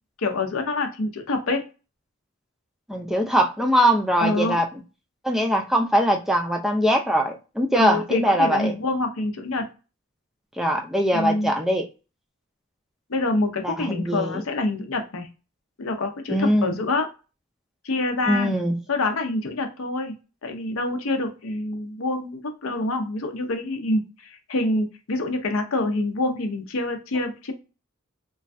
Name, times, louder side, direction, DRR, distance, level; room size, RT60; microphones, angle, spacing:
voice 1, 0.2-1.6 4.2-4.6 7.8-9.7 11.1-11.5 13.1-15.3 15.8-17.1 17.8-18.5 18.9-20.1 20.4-27.5, left 2 dB, 80° left, 5 dB, 0.6 m, -26 dB
voice 2, 2.9-4.7 5.2-8.7 10.6-11.9 13.6-14.4 16.3-16.8 18.3-18.8, equal, ahead, 2 dB, 0.4 m, -22 dB
3.1 x 2.2 x 2.6 m, 0.31 s
head